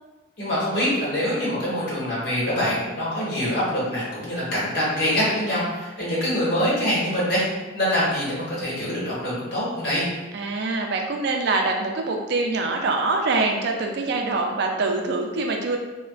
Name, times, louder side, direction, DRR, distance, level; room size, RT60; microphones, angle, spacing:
voice 1, 0.4-7.4 7.7-10.1, equal, 50° left, -8 dB, 1.2 m, -24 dB
voice 2, 10.3-15.8, right 3 dB, 55° right, 3 dB, 0.3 m, -24 dB
3.4 x 2.1 x 2.3 m, 1.2 s
head